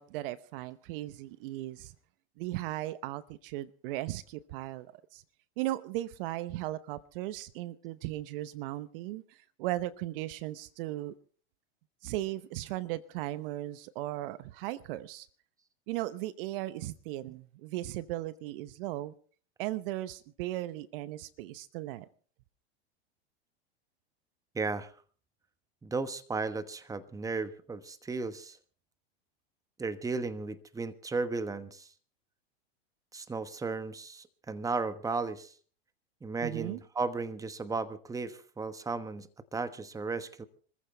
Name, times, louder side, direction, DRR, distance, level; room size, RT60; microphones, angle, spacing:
voice 1, 0.0-1.9 2.4-5.2 5.6-11.1 12.0-15.3 15.9-19.1 19.6-22.1 36.4-36.8, right 16 dB, 55° right, 16 dB, 0.9 m, -37 dB
voice 2, 24.5-24.9 25.8-28.6 29.8-31.9 33.1-35.5 36.2-40.4, right 4 dB, 10° right, 12 dB, 1.2 m, -35 dB
25.5 x 14.5 x 3.4 m, 0.41 s
hypercardioid pair, 110°, 32 cm